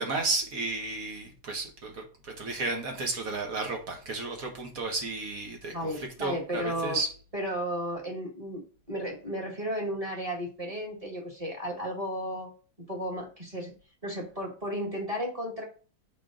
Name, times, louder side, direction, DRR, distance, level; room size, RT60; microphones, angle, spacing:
voice 1, 0.0-7.1, right 3 dB, 60° right, 2 dB, 1.7 m, -33 dB
voice 2, 5.7-7.0 7.3-8.6 8.9-12.5 12.8-13.7 14.0-15.6, equal, 20° right, -1 dB, 1.5 m, -34 dB
6.6 x 5.1 x 3.8 m, 0.38 s
omnidirectional pair, 1.8 m